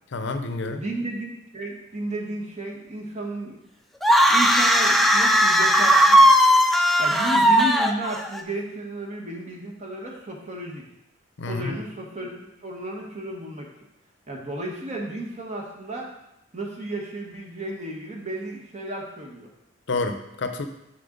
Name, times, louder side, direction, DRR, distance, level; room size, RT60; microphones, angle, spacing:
voice 1, 0.1-0.8 11.4-11.7 19.9-20.7, left 3 dB, 70° left, 8 dB, 0.6 m, -28 dB
voice 2, 0.7-3.6 4.3-6.2 7.0-10.8 11.4-13.7 14.3-16.1 16.5-19.5, right 1 dB, 35° right, 0 dB, 1.4 m, -33 dB
sound 1, 4.0-8.4, equal, ahead, 0.4 m, -17 dB
6.8 x 6.3 x 3.9 m, 0.84 s
head